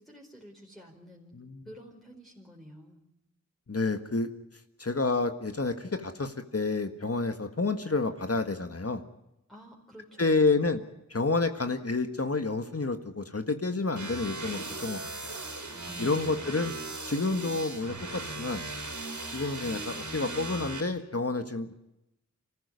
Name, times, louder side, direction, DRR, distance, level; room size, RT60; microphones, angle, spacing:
voice 1, 0.0-3.0 9.5-10.6 15.8-16.8, equal, ahead, -3 dB, 4.8 m, -51 dB
voice 2, 3.7-4.3 4.8-9.0 10.2-10.8 11.1-15.4 16.0-16.7 17.0-18.6 19.3-21.7, left 3 dB, 55° left, 7 dB, 1.7 m, -29 dB
sound 1, 14.0-20.8, right 2 dB, 75° right, 4.0 m, -38 dB
26.0 x 14.5 x 9.6 m, 0.88 s
wide cardioid pair, 50°, 30 cm